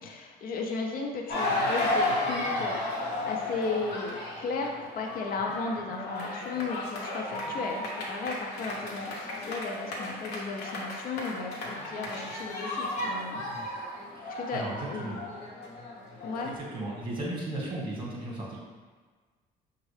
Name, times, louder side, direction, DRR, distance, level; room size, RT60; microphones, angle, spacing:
voice 1, 0.0-13.4 14.3-15.1 16.2-16.5, left 4 dB, 60° left, 2 dB, 0.5 m, -35 dB
sound 1, 1.3-16.6, left 1 dB, 80° left, 1.0 m, -34 dB
voice 2, 14.1-15.2 16.4-18.6, right 1 dB, 30° right, -4 dB, 1.4 m, -36 dB
6.2 x 2.4 x 3.2 m, 1.5 s
cardioid pair, 110°, 17 cm